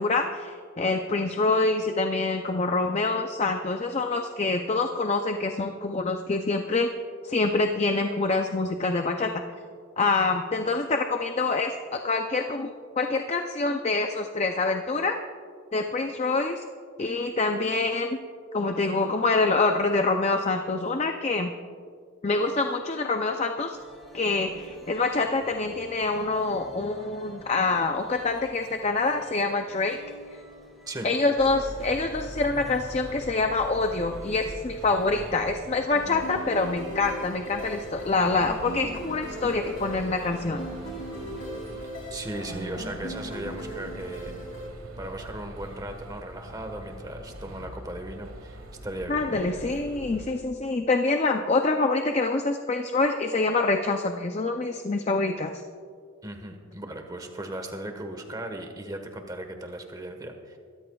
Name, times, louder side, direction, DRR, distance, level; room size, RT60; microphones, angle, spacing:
voice 1, 0.0-6.9 7.2-9.4 10.0-15.2 15.7-16.6 17.0-18.2 18.5-21.5 22.2-23.8 24.1-30.0 31.0-40.6 49.1-55.5, left 3 dB, 30° left, 5 dB, 0.5 m, -26 dB
sound 1, 23.7-41.8, right 1 dB, ahead, 2.3 m, -47 dB
sound 2, 31.4-50.4, right 1 dB, 85° right, 1.7 m, -43 dB
sound 3, 35.9-44.7, right 1 dB, 80° left, 3.0 m, -38 dB
voice 2, 42.1-44.4 45.0-49.4 56.2-60.6, right 1 dB, 20° right, 5 dB, 1.2 m, -37 dB
23.0 x 13.5 x 2.3 m, 2.1 s
head